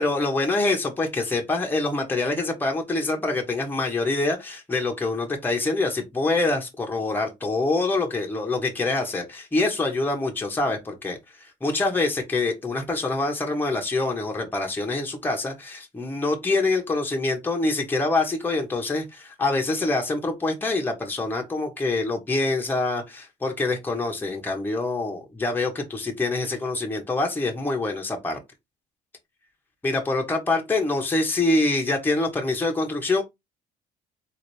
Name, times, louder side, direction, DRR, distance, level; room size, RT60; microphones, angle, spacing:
voice 1, 0.0-28.4 29.8-33.2, left 2 dB, 10° left, 0.9 m, -25 dB
4.0 x 2.5 x 3.2 m
cardioid pair, 110°, 17 cm